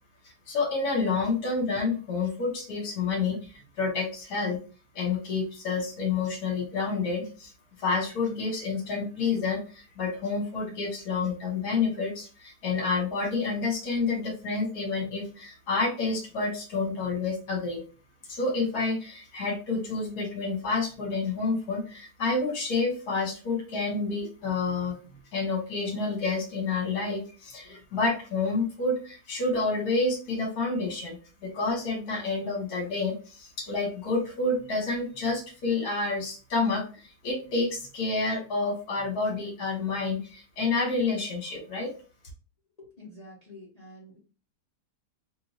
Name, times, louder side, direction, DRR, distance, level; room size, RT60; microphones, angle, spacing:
voice 1, 0.2-4.6 4.9-7.5 7.8-17.8 18.3-25.0 25.3-41.9, left 3 dB, 65° left, 1 dB, 1.6 m, -29 dB
voice 2, 42.8-44.2, left 1 dB, 30° left, -4 dB, 0.8 m, -48 dB
3.8 x 2.5 x 2.7 m, 0.36 s
omnidirectional pair, 1.8 m